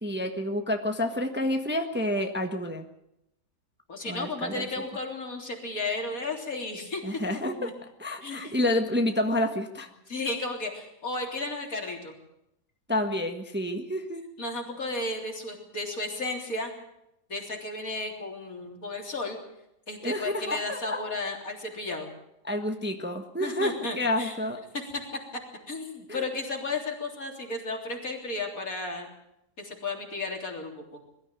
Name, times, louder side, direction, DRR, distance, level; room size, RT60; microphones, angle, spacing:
voice 1, 0.0-2.9 4.0-4.7 7.0-7.7 8.0-9.9 12.9-14.2 20.0-21.0 22.4-24.6 26.1-26.2, left 1 dB, 5° right, 4 dB, 1.3 m, -29 dB
voice 2, 3.9-7.0 7.5-7.7 8.2-8.6 10.1-12.2 14.4-16.7 17.3-19.4 19.9-22.1 23.4-24.3 25.7-29.1 29.6-31.0, left 2 dB, 60° left, 1 dB, 4.0 m, -34 dB
22.0 x 13.5 x 9.1 m, 0.84 s
omnidirectional pair, 1.7 m